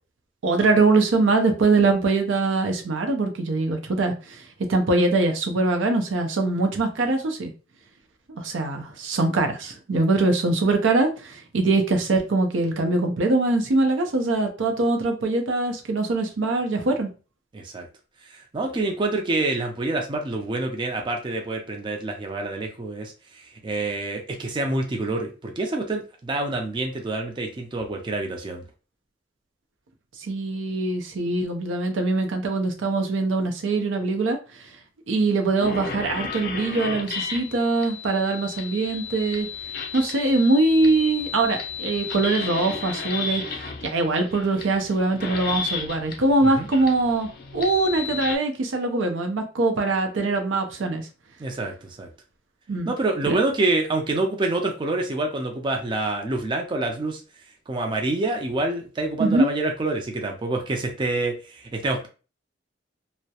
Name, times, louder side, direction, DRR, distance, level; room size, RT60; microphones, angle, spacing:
voice 1, 0.4-4.4 4.7-7.5 8.3-17.1 30.2-34.4 35.1-39.5 39.9-51.1 52.7-52.9 53.3-53.4 59.2-59.5, right 3 dB, 90° right, 4 dB, 0.5 m, -23 dB
voice 2, 17.5-17.9 18.3-28.6 46.4-46.7 51.4-52.1 52.9-57.2 57.7-62.1, right 2 dB, 25° right, 2 dB, 0.4 m, -27 dB
sound 1, 35.6-48.4, left 5 dB, 50° left, 0.4 m, -33 dB
2.3 x 2.0 x 2.7 m, 0.34 s
head